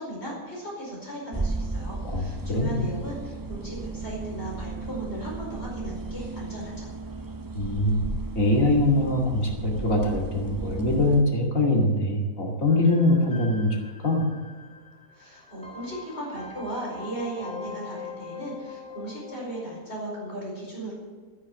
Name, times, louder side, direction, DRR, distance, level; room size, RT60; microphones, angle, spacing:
voice 1, 0.0-6.9 15.1-20.9, right 1 dB, 40° left, -4 dB, 5.2 m, -36 dB
sound 1, 1.3-11.2, right 3 dB, 35° right, 0.3 m, -34 dB
voice 2, 2.1-2.8 7.5-8.0 8.4-13.8 14.0-14.2, left 1 dB, 60° left, -1 dB, 2.7 m, -23 dB
sound 2, 12.7-19.8, left 5 dB, 5° left, 2.0 m, -43 dB
13.5 x 9.6 x 7.2 m, 1.5 s
omnidirectional pair, 1.6 m